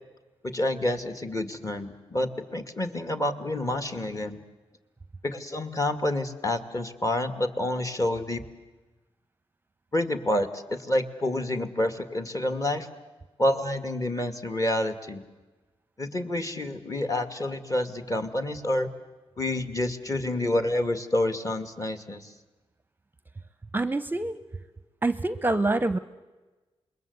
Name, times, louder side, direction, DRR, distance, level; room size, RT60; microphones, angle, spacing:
voice 1, 0.4-4.4 5.2-8.4 9.9-12.9 13.4-15.2 16.0-18.9 19.4-22.3, left 1 dB, 30° left, 8 dB, 2.2 m, -28 dB
voice 2, 23.7-24.4 25.0-26.0, right 2 dB, 20° right, 12 dB, 0.8 m, -26 dB
27.5 x 21.5 x 8.1 m, 1.2 s
cardioid pair, 85°, 11 cm